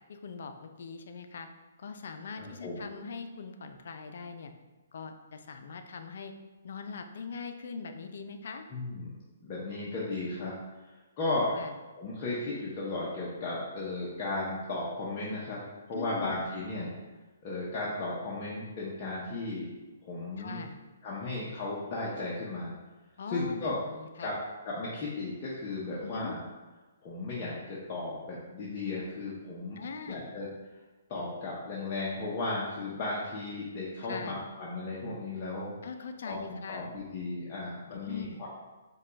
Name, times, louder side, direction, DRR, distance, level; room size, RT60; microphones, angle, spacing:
voice 1, 0.1-1.5 1.8-4.5 4.9-6.3 6.6-8.7 11.5-11.7 15.9-16.4 20.4-20.8 23.2-24.3 26.0-26.3 29.8-30.3 34.1-34.4 35.8-36.9 37.9-38.5, left 5 dB, 65° left, 6 dB, 0.5 m, -41 dB
voice 2, 2.4-2.8 8.7-9.1 9.4-10.5 10.8-11.5 12.0-15.6 15.9-17.0 17.4-19.7 20.0-20.6 21.0-22.7 23.3-23.8 24.2-24.4 24.6-26.4 27.0-29.8 30.1-30.5 31.1-35.7 36.3-38.5, left 2 dB, 30° left, -7 dB, 0.8 m, -35 dB
5.3 x 2.3 x 3.9 m, 1.2 s
hypercardioid pair, 155°, 0 cm